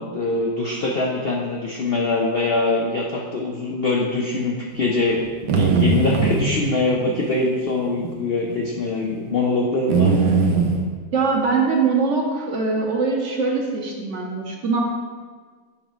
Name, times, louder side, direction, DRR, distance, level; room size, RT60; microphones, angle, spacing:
voice 1, 0.0-10.3, left 2 dB, 70° left, -1 dB, 0.5 m, -23 dB
sound 1, 5.2-6.5 7.8-8.1 8.5-8.6 9.9-10.8, right 5 dB, 85° right, 1.3 m, -19 dB
voice 2, 11.1-14.8, right 4 dB, 55° right, 0 dB, 1.0 m, -22 dB
7.1 x 5.0 x 3.1 m, 1.5 s
omnidirectional pair, 1.7 m